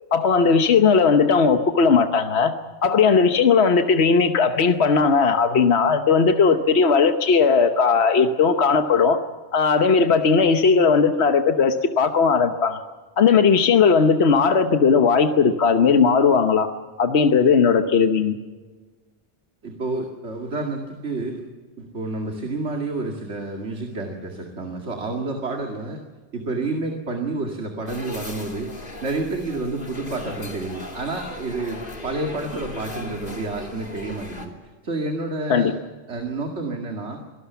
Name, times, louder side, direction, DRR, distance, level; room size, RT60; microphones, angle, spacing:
voice 1, 0.1-2.5 2.8-9.2 9.5-12.8 13.2-16.7 17.0-18.4 35.5-35.7, left 5 dB, 70° left, 7 dB, 1.3 m, -17 dB
voice 2, 19.6-21.4 21.8-26.0 26.3-28.7 29.0-35.7 36.1-37.2, right 2 dB, 80° right, 2 dB, 2.5 m, -29 dB
sound 1, 27.9-34.5, left 1 dB, 50° left, 3.1 m, -37 dB
26.5 x 18.5 x 7.0 m, 1.4 s
omnidirectional pair, 1.1 m